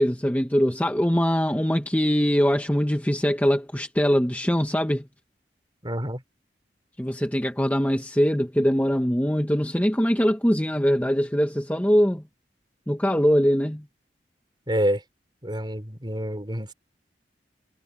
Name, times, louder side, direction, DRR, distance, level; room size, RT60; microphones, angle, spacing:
voice 1, 0.0-5.0 7.0-12.2 12.9-13.8, equal, 10° left, 1.1 m, -22 dB
voice 2, 5.8-6.2 14.7-15.0 15.4-16.7, equal, 25° right, 3.9 m, -27 dB
head